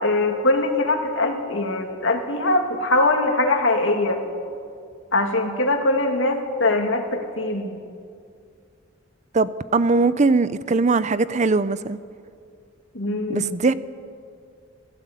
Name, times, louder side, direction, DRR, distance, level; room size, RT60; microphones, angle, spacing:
voice 1, 0.0-4.2 5.1-7.7 12.9-13.5, left 2 dB, 70° left, 4 dB, 2.6 m, -22 dB
voice 2, 9.3-12.0 13.3-13.7, right 3 dB, 35° right, 15 dB, 0.6 m, -20 dB
24.0 x 15.5 x 8.4 m, 2.3 s
head